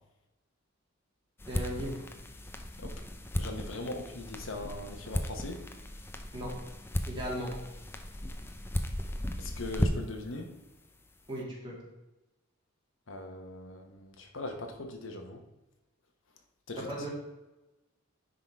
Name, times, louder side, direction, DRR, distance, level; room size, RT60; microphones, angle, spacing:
sound 1, 1.4-10.2, left 1 dB, 10° left, 0.5 m, -36 dB
voice 1, 1.5-2.0 6.3-6.5 7.1-7.6 11.3-11.8 16.7-17.1, right 1 dB, 25° right, -5 dB, 2.4 m, -37 dB
voice 2, 3.4-5.6 9.4-10.5 13.1-15.4 16.7-17.1, left 2 dB, 70° left, 4 dB, 1.0 m, -40 dB
9.7 x 3.9 x 4.6 m, 1.0 s
head